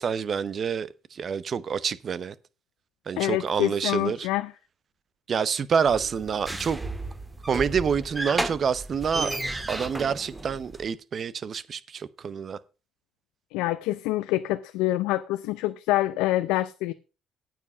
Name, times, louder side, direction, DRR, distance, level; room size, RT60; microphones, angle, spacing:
voice 1, 0.0-2.3 3.1-4.3 5.3-6.8 7.5-9.3 9.7-12.6, right 6 dB, 50° right, 0.8 m, -27 dB
voice 2, 3.2-4.5 13.5-16.9, left 16 dB, 85° left, 0.4 m, -26 dB
sound 1, 5.9-10.9, right 2 dB, 15° right, 1.7 m, -33 dB
9.3 x 7.7 x 5.5 m
supercardioid pair, 70°, 0 cm